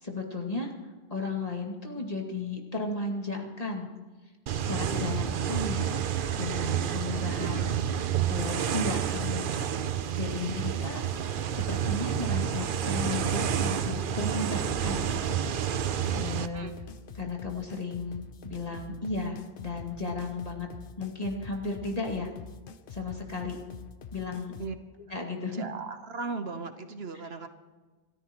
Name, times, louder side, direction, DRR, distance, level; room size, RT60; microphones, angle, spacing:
voice 1, 0.0-3.9 4.5-7.8 8.3-9.7 10.1-11.0 11.5-16.7 17.1-20.7 21.0-22.3 22.9-23.6 24.1-24.6 25.1-25.6, left 3 dB, 40° left, 0 dB, 2.4 m, -35 dB
sound 1, 4.5-16.5, right 9 dB, 60° right, 0.8 m, -29 dB
voice 2, 7.4-7.7 16.5-16.7 24.6-24.7 25.5-27.5, right 4 dB, 75° right, 8 dB, 1.4 m, -37 dB
sound 2, 11.5-24.7, left 5 dB, 60° left, 0.9 m, -46 dB
28.0 x 13.5 x 3.1 m, 1.3 s
omnidirectional pair, 1.0 m